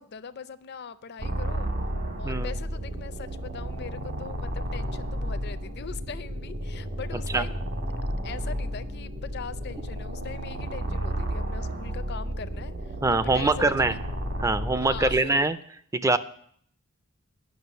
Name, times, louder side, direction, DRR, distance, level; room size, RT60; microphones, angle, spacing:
voice 1, 0.0-1.7 2.2-7.6 8.2-14.0 14.8-15.5, left 6 dB, 50° left, 13 dB, 0.5 m, -41 dB
sound 1, 1.2-15.2, equal, 65° right, 1.9 m, -32 dB
voice 2, 13.0-13.9 14.4-15.6 16.0-16.2, right 2 dB, 15° right, 13 dB, 0.4 m, -23 dB
9.5 x 6.0 x 8.1 m, 0.65 s
head